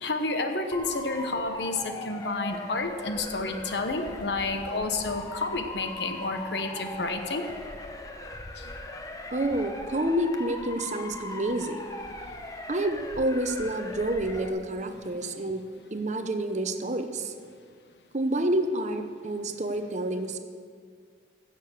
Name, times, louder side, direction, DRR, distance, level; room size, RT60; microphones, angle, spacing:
voice 1, 0.0-7.5 8.6-8.7 12.1-12.2 14.9-15.0, left 3 dB, 75° left, 6 dB, 1.1 m, -30 dB
Motor vehicle (road) / Siren, 0.7-14.5, left 1 dB, 20° left, 0.7 m, -40 dB
voice 2, 9.3-11.8 12.7-15.6 15.9-17.3 18.1-20.4, right 1 dB, 40° right, 7 dB, 0.8 m, -28 dB
16.0 x 6.8 x 6.5 m, 2.1 s
head